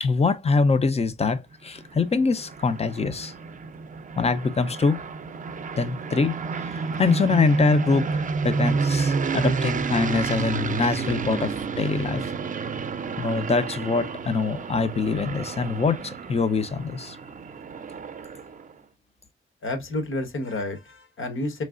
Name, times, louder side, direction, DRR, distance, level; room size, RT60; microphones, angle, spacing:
voice 1, 0.0-3.3 4.2-5.0 5.8-6.4 6.7-12.3 13.2-17.2, left 4 dB, 30° left, 0.5 m, -24 dB
sound 1, 1.5-18.7, right 4 dB, 40° right, 0.5 m, -30 dB
voice 2, 19.6-21.6, left 2 dB, 75° left, 1.3 m, -30 dB
4.4 x 3.1 x 2.4 m
wide cardioid pair, 125°, 21 cm